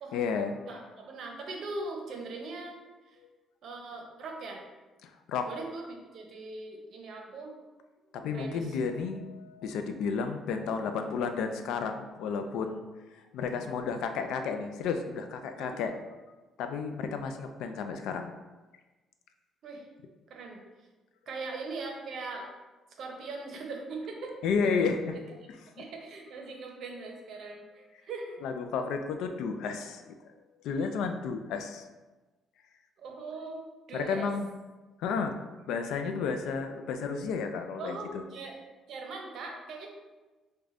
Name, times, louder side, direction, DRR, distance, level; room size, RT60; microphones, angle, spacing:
voice 1, 0.1-0.6 5.0-5.5 8.1-12.9 13.3-16.0 16.6-18.3 24.4-25.2 28.4-30.1 30.6-31.8 33.9-34.5 35.0-35.4 35.7-38.2, left 5 dB, 90° left, 6 dB, 0.3 m, -32 dB
voice 2, 0.7-2.8 3.1-3.2 3.6-4.6 5.5-7.5 8.3-8.8 15.5-15.8 19.6-19.8 20.3-20.6 21.3-22.5 23.0-24.3 24.8-24.9 25.8-28.4 33.0-33.6 33.9-34.3 37.8-38.6 38.9-39.9, right 3 dB, 60° right, 1 dB, 0.6 m, -40 dB
4.8 x 2.2 x 2.5 m, 1.2 s
cardioid pair, 140°, 0 cm